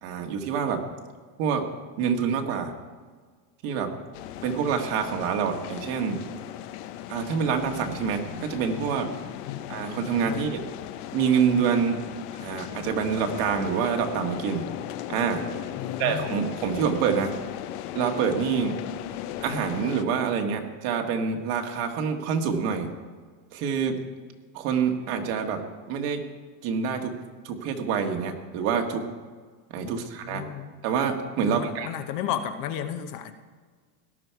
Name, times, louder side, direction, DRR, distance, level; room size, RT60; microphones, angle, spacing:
voice 1, 0.0-0.8 1.4-1.7 2.0-2.7 3.6-3.9 4.4-6.2 7.1-9.1 9.7-10.6 11.1-12.0 12.3-14.8 15.1-15.4 16.0-17.3 17.9-18.8 19.4-22.9 23.5-24.0 24.5-25.6 25.9-26.2 26.6-27.1 27.4-29.0 29.7-30.4 30.8-31.9, right 6 dB, 55° right, 4 dB, 1.8 m, -26 dB
sound 1, 4.1-20.0, left 12 dB, 70° left, 0.9 m, -37 dB
voice 2, 9.4-9.8 10.2-10.4 15.7-16.4 29.8-30.7 31.4-33.3, left 10 dB, 45° left, 8 dB, 0.9 m, -33 dB
17.5 x 11.0 x 4.7 m, 1.5 s
supercardioid pair, 150°, 47 cm